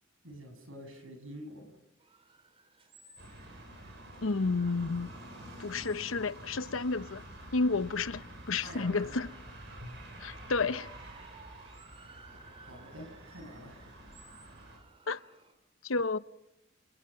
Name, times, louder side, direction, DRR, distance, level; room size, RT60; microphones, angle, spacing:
voice 1, 0.2-1.8 8.6-9.2 12.6-13.9, equal, 85° right, 7.4 m, -47 dB
sound 1, 2.0-15.5, right 3 dB, 30° right, 3.1 m, -57 dB
sound 2, 3.2-14.8, right 1 dB, 60° right, 7.2 m, -49 dB
voice 2, 4.2-5.1 5.6-7.2 7.5-9.3 10.2-10.9 15.1-15.2 15.8-16.2, left 3 dB, 85° left, 0.9 m, -31 dB
29.5 x 28.5 x 5.8 m
head